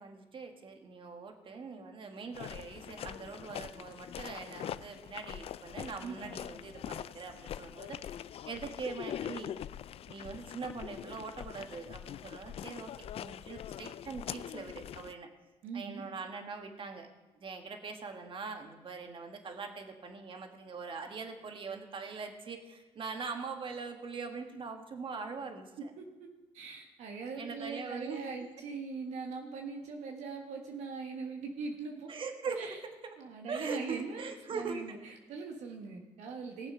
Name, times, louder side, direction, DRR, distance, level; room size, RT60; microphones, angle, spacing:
voice 1, 0.0-9.6 10.1-15.3 15.7-17.1 17.4-25.9 27.4-28.3 32.1-32.8 33.0-33.1 33.5-35.0, right 4 dB, 45° right, 5 dB, 1.9 m, -42 dB
sound 1, 2.3-15.1, left 10 dB, 55° left, 0.4 m, -43 dB
voice 2, 6.0-6.4 15.6-16.0 26.0-26.3 26.5-32.1 32.6-32.8 33.2-36.7, right 4 dB, 75° right, 2 dB, 1.5 m, -41 dB
19.0 x 7.2 x 5.6 m, 1.1 s
supercardioid pair, 70°, 12 cm